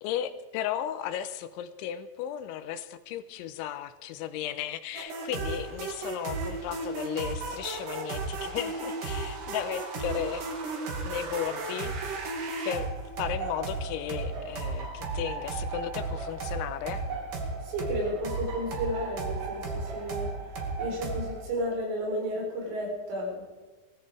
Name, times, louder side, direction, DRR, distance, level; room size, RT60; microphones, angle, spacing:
voice 1, 0.0-10.5 11.0-12.0 12.7-12.9 13.2-17.0, left 10 dB, 85° left, 11 dB, 3.2 m, -35 dB
sound 1, 4.9-21.4, right 3 dB, 50° right, 3.3 m, -34 dB
voice 2, 17.6-20.3 20.8-23.4, equal, 85° right, 0 dB, 7.3 m, -32 dB
19.0 x 14.5 x 4.9 m, 1.3 s
omnidirectional pair, 5.5 m